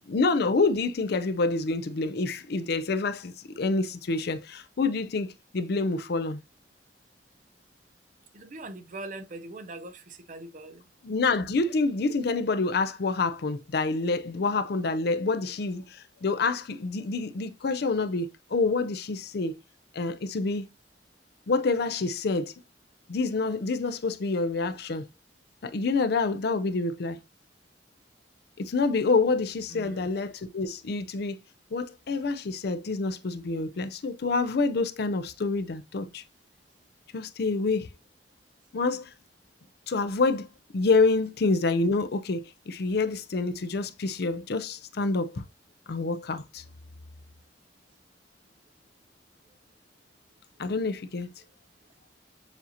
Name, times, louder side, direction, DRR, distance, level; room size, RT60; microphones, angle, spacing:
voice 1, 0.1-6.4 11.0-19.6 19.9-20.6 21.5-22.5 23.1-25.1 25.6-27.2 28.6-31.4 31.7-36.2 37.1-37.9 38.7-39.1 39.9-40.5 40.7-45.4 45.9-46.6 50.6-51.3, left 3 dB, 60° left, 0.5 m, -27 dB
voice 2, 8.3-10.8 29.7-30.1, right 2 dB, 45° right, 0.5 m, -41 dB
7.0 x 2.7 x 2.8 m
head